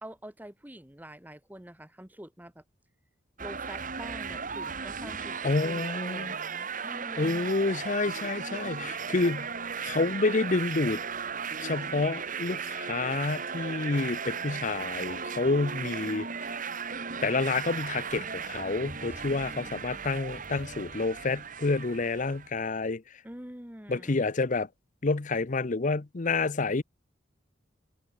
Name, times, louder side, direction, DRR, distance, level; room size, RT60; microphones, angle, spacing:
voice 1, 0.0-2.6 3.4-7.5 19.1-20.0 23.2-24.2, right 1 dB, 10° right, 2.1 m, -46 dB
sound 1, 3.4-22.5, right 6 dB, 45° right, 2.7 m, -36 dB
voice 2, 5.4-6.3 7.2-9.5 9.8-11.0 11.6-16.3 17.2-23.0 23.9-24.7 25.0-26.8, left 3 dB, 45° left, 0.7 m, -29 dB
head